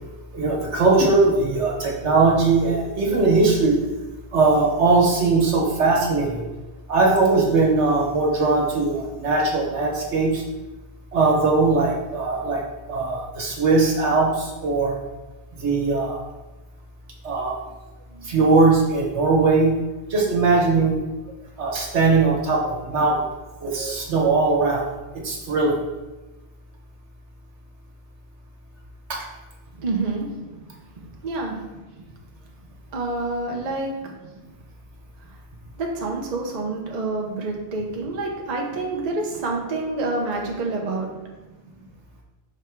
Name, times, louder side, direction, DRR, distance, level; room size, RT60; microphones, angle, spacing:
voice 1, 0.3-3.7 4.3-6.4 6.9-10.4 11.1-12.6 12.9-14.9 15.5-16.2 17.2-17.5 18.1-19.8 20.1-21.0 21.6-23.2 23.6-24.9 25.2-25.8 29.1-29.2, right 3 dB, 70° right, -1 dB, 1.5 m, -20 dB
voice 2, 29.8-30.3 31.2-31.6 32.9-33.9 35.8-41.1, right 3 dB, 40° right, 0 dB, 0.8 m, -27 dB
6.0 x 3.5 x 4.6 m, 1.2 s
omnidirectional pair, 1.2 m